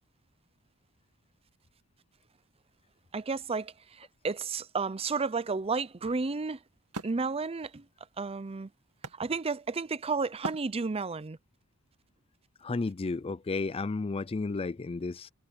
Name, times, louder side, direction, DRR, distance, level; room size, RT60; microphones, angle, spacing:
voice 1, 3.1-6.6 7.0-7.9 8.2-8.7 9.1-11.4, right 4 dB, 25° right, 0.5 m, -32 dB
Wood, 5.7-9.9 10.4-11.3, right 2 dB, 85° right, 2.1 m, -43 dB
voice 2, 12.6-15.3, left 3 dB, 25° left, 0.4 m, -32 dB
head